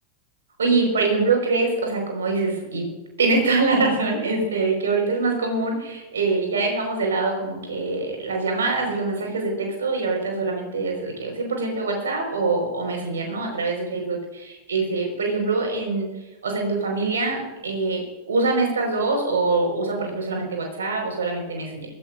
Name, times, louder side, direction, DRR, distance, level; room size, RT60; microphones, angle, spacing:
voice 1, 0.6-2.9 3.2-14.2 14.7-16.1 16.4-18.0 18.3-21.9, right 3 dB, 70° right, 2 dB, 5.0 m, -24 dB
22.0 x 15.5 x 2.6 m, 1.1 s
figure-of-eight pair, 90°, 0 cm